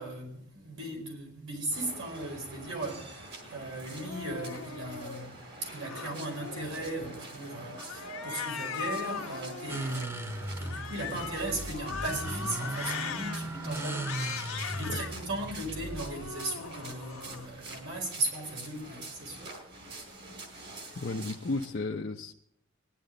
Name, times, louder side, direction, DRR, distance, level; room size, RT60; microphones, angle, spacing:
voice 1, 0.0-5.3 5.6-19.5, right 2 dB, 70° right, 4.8 m, -37 dB
sound 1, 1.7-21.7, right 2 dB, 55° right, 3.6 m, -46 dB
Cat, 3.8-5.3 5.8-7.1 7.7-10.0 10.6-13.4 13.9-15.1 15.7-17.5, left 6 dB, 90° left, 1.4 m, -40 dB
sound 2, 9.7-18.0, right 1 dB, 10° right, 0.6 m, -38 dB
voice 2, 20.9-22.3, left 3 dB, 50° left, 0.7 m, -34 dB
19.0 x 11.0 x 3.9 m
head